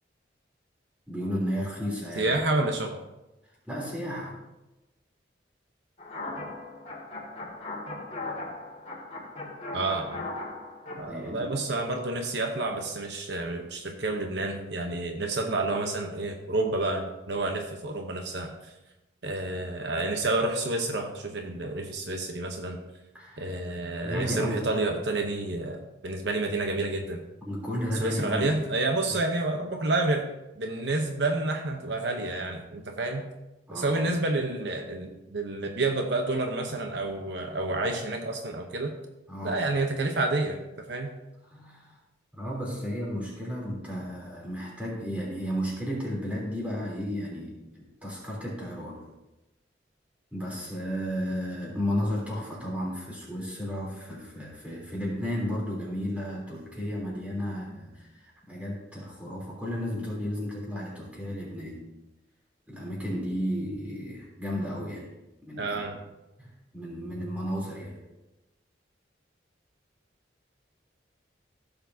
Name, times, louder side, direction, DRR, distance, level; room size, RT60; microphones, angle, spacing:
voice 1, 1.1-2.4 3.6-4.4 11.1-11.6 23.1-23.5 24.0-24.6 27.4-28.5 29.1-29.2 33.7-34.1 39.3-39.6 41.5-41.9 42.3-49.0 50.3-61.8 62.7-65.1 65.4-65.8 66.4-68.0, equal, 10° right, -5 dB, 3.4 m, -33 dB
voice 2, 2.2-3.0 9.7-10.3 11.0-18.7 19.2-22.8 23.4-27.2 28.0-30.3 30.6-33.3 33.7-38.9 39.4-40.6 40.9-41.1 65.6-66.0, right 2 dB, 70° right, 3 dB, 0.9 m, -29 dB
sound 1, 6.0-11.0, left 2 dB, 35° left, 2.1 m, -38 dB
15.5 x 6.9 x 2.8 m, 1.0 s
head